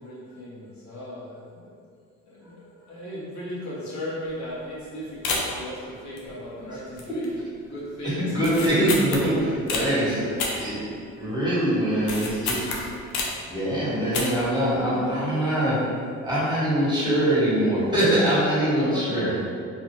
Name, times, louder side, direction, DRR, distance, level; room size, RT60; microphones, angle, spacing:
voice 1, 0.0-1.7 2.3-7.4 7.7-8.7 14.9-15.4 18.6-19.5, left 1 dB, 60° left, -7 dB, 1.0 m, -36 dB
sound 1, 4.3-4.5 4.8-4.9 5.2-5.7 6.2-6.6 7.0-7.4 7.6-7.7 8.4-9.9 10.4-11.3 11.6-13.5 14.0-14.5 14.8-14.9, left 3 dB, 85° left, 0.5 m, -30 dB
voice 2, 8.2-12.8 13.4-15.8 16.2-19.3, right 1 dB, 15° right, -10 dB, 1.4 m, -23 dB
2.6 x 2.4 x 3.0 m, 2.3 s
hypercardioid pair, 65°, 32 cm